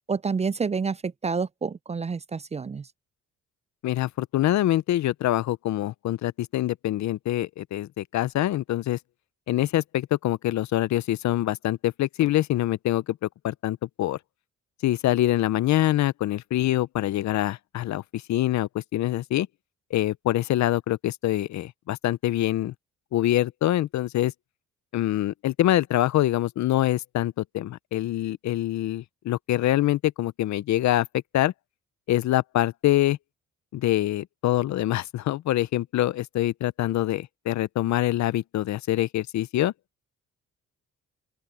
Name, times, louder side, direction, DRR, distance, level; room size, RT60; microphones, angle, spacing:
voice 1, 0.1-2.9, right 5 dB, 20° right, 0.4 m, -28 dB
voice 2, 3.8-9.0 9.5-14.2 14.8-19.5 19.9-22.7 23.1-24.3 24.9-31.1 31.3-31.5 32.1-33.2 33.7-39.7, left 14 dB, 65° left, 0.6 m, -25 dB
open air
cardioid pair, 90°, 30 cm